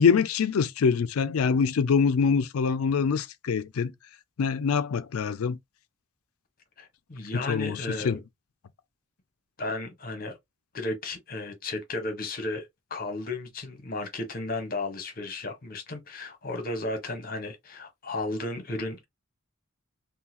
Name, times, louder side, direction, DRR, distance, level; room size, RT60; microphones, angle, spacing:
voice 1, 0.0-3.9 4.4-5.6 7.3-8.2, left 6 dB, 90° left, 0.4 m, -24 dB
voice 2, 6.8-8.2 9.6-10.4 10.7-19.1, left 2 dB, 45° left, 1.1 m, -34 dB
3.7 x 2.2 x 2.9 m
head